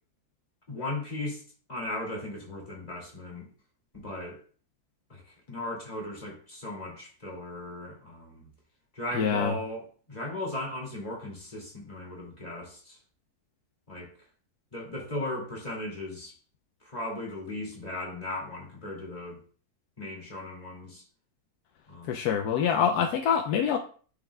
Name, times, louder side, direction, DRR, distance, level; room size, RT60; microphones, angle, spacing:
voice 1, 0.7-1.4 1.7-3.5 3.9-4.4 5.1-8.5 8.9-13.0 13.9-14.1 14.7-16.3 16.8-19.4 20.0-21.0 21.9-22.3, left 1 dB, 25° left, -2 dB, 2.6 m, -37 dB
voice 2, 9.1-9.5 22.1-23.8, left 7 dB, 85° left, 4 dB, 1.2 m, -25 dB
9.4 x 6.4 x 2.3 m, 0.42 s
omnidirectional pair, 1.6 m